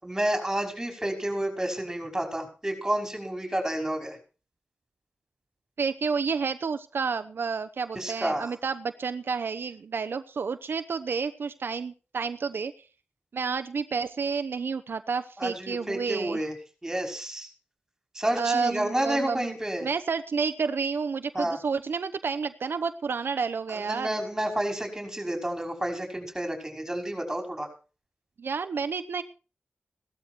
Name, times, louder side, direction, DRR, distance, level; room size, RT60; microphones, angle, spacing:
voice 1, 0.0-4.2 7.9-8.5 15.4-16.5 16.8-17.5 18.1-19.9 21.3-21.6 23.7-27.7, right 1 dB, 15° right, 4 dB, 5.6 m, -30 dB
voice 2, 5.8-12.7 13.3-16.4 18.4-19.5 19.8-24.2 28.4-29.2, right 5 dB, 80° right, 9 dB, 0.8 m, -30 dB
16.5 x 12.5 x 4.5 m, 0.36 s
wide cardioid pair, 115°, 4 cm